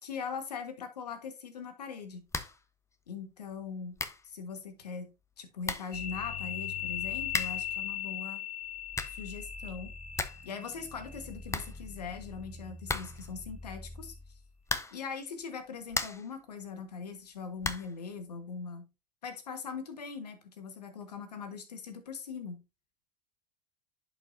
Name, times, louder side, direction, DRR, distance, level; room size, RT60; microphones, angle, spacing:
voice 1, 0.0-2.3 3.1-8.4 9.1-9.9 10.4-14.1 14.9-18.9 19.2-22.6, left 5 dB, 85° left, 8 dB, 1.6 m, -41 dB
sound 1, 2.3-2.7 2.9-3.0 3.6-3.7 4.0-4.3 5.2-5.3 5.6-6.0 7.3-7.7 8.7-9.3 9.7-9.8 9.9-10.5 10.8-10.9 11.1-11.2 11.5-12.3 12.8-13.4 14.6-15.1 15.6-16.4 17.6-18.0, left 3 dB, 15° left, 0.9 m, -36 dB
sound 2, 5.9-14.5, left 8 dB, 65° left, 2.5 m, -40 dB
10.5 x 5.7 x 2.7 m, 0.27 s
hypercardioid pair, 75°, 20 cm